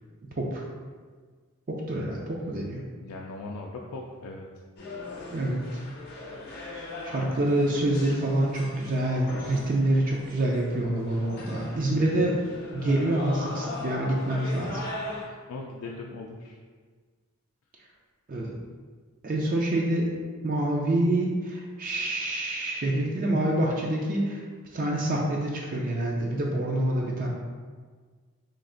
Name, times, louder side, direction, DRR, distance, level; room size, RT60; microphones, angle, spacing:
voice 1, 1.9-2.8 5.3-5.6 7.0-12.4 12.7-14.8 18.3-18.6 19.2-20.1 20.4-24.4 24.7-27.3, right 1 dB, 40° right, -2 dB, 0.4 m, -26 dB
voice 2, 3.0-4.5 11.9-12.3 15.5-16.6, left 3 dB, 90° left, -1 dB, 0.3 m, -39 dB
sound 1, 4.8-15.3, left 2 dB, 45° left, 0.7 m, -40 dB
3.2 x 2.5 x 3.7 m, 1.5 s
head